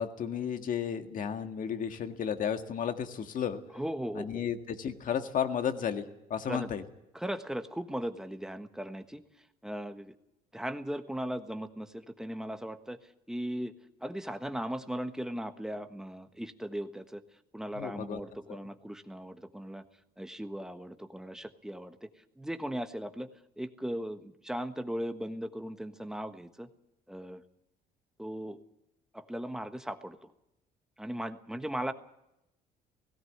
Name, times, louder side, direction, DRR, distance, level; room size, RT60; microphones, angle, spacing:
voice 1, 0.0-3.6 4.1-6.8 17.7-18.2 18.5-18.6, left 8 dB, 50° left, 7 dB, 1.8 m, -33 dB
voice 2, 3.7-4.4 6.5-6.7 7.1-9.2 9.6-10.2 10.5-13.0 13.3-13.7 14.0-17.2 17.5-19.8 20.2-22.1 22.4-23.3 23.6-26.7 27.1-27.4 28.2-28.6 29.1-30.2 31.0-31.9, equal, 5° right, 8 dB, 1.4 m, -37 dB
18.0 x 16.0 x 9.2 m, 0.87 s
cardioid pair, 110°, 17 cm